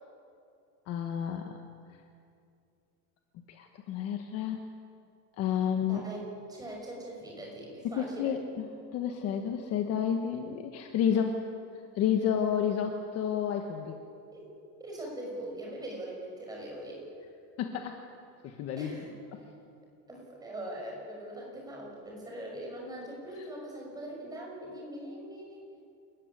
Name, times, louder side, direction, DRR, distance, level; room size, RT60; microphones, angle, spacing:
voice 1, 0.9-1.6 3.5-4.6 5.4-6.0 7.8-11.5 11.9-14.0 17.6-18.0 18.4-18.9 19.3-19.4 23.4-23.5, left 8 dB, 35° left, 5 dB, 1.4 m, -30 dB
voice 2, 5.9-8.4 14.3-14.5 14.8-17.0 18.8-19.1 20.1-25.6, right 1 dB, 10° right, -2 dB, 6.0 m, -41 dB
29.0 x 15.0 x 9.8 m, 2.5 s
cardioid pair, 175°, 44 cm